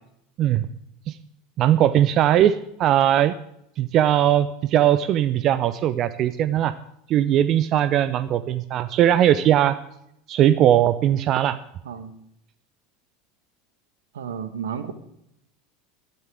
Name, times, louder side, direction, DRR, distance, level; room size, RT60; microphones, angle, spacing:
voice 1, 1.6-3.4 3.8-6.7 7.1-9.8 10.3-11.6, right 11 dB, 40° right, 14 dB, 0.7 m, -19 dB
voice 2, 14.1-14.9, right 7 dB, 70° right, 10 dB, 1.5 m, -32 dB
19.0 x 13.0 x 3.6 m, 0.75 s
figure-of-eight pair, 75°, 0 cm